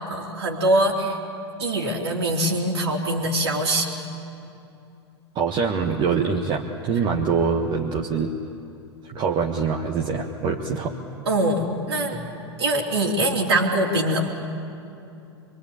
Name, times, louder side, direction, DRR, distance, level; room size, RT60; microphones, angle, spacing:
voice 1, 0.1-1.2 1.6-3.9 11.3-12.2 12.6-14.3, right 1 dB, 70° right, -3 dB, 3.2 m, -23 dB
voice 2, 5.3-8.3 9.1-10.9, right 5 dB, 30° right, 0 dB, 1.6 m, -24 dB
25.0 x 23.0 x 8.8 m, 2.7 s
figure-of-eight pair, 95°, 14 cm